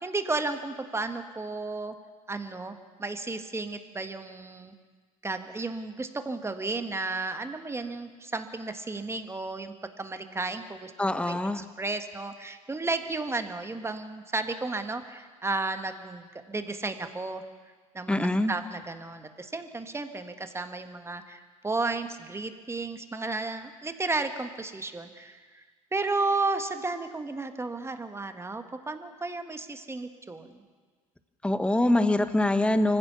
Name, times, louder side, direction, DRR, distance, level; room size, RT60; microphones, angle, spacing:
voice 1, 0.0-1.9 2.3-4.7 5.2-10.9 11.3-17.4 17.9-25.6 25.9-30.6, right 3 dB, 15° right, 8 dB, 1.7 m, -33 dB
voice 2, 11.0-11.6 18.1-18.5 31.4-33.0, left 1 dB, 5° left, 10 dB, 1.3 m, -24 dB
25.0 x 15.5 x 7.1 m, 1.5 s
hypercardioid pair, 70°, 18 cm